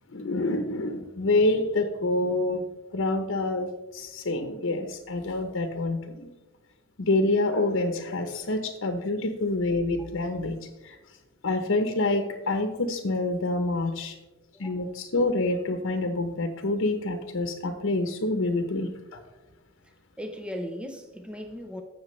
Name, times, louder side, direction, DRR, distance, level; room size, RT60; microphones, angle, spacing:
voice 1, 0.1-2.6 2.9-6.3 7.0-10.6 10.8-11.0 11.4-14.1 14.6-19.2, left 2 dB, 85° left, 6 dB, 0.8 m, -27 dB
voice 2, 14.5-14.9 20.2-21.8, equal, 5° right, 4 dB, 0.6 m, -37 dB
15.0 x 6.0 x 3.2 m, 1.1 s
head